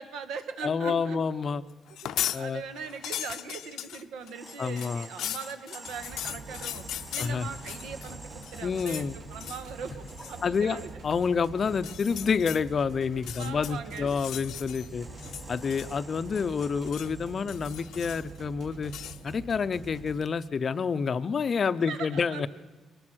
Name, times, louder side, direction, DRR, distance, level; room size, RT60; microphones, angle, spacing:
voice 1, 0.0-1.2 2.0-10.9 13.4-14.2 21.9-22.5, right 6 dB, 85° right, 9 dB, 1.7 m, -40 dB
voice 2, 0.6-1.6 2.3-2.6 4.6-5.1 7.2-7.5 8.6-9.2 10.4-10.8 11.0-15.1 15.5-18.9 19.2-22.5, left 5 dB, 35° left, 13 dB, 0.6 m, -28 dB
sound 1, 1.9-2.4 2.8-8.1 8.4-9.1 9.4-9.7 10.1-10.4 11.7-12.6 13.1-14.9 15.2-16.1 16.3-17.1 17.5-18.4 18.9-19.2, left 11 dB, 70° left, 0.7 m, -38 dB
sound 2, 2.0-18.5, right 2 dB, 20° right, 2.2 m, -51 dB
sound 3, 5.8-20.2, right 3 dB, 60° right, 3.8 m, -45 dB
23.0 x 19.5 x 6.3 m, 1.2 s
cardioid pair, 160°, 0 cm